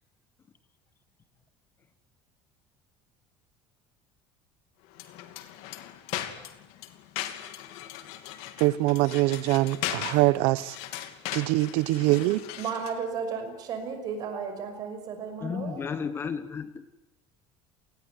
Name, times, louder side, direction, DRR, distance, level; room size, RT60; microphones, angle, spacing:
sound 1, 4.9-13.0, left 12 dB, 70° left, 2.7 m, -38 dB
voice 1, 8.6-10.8 11.3-12.4, right 18 dB, 75° right, 1.0 m, -23 dB
voice 2, 12.6-15.8, right 6 dB, 40° right, 6.0 m, -34 dB
voice 3, 15.4-16.9, left 6 dB, 20° left, 1.2 m, -33 dB
28.0 x 20.0 x 9.8 m
cardioid pair, 175°, 10 cm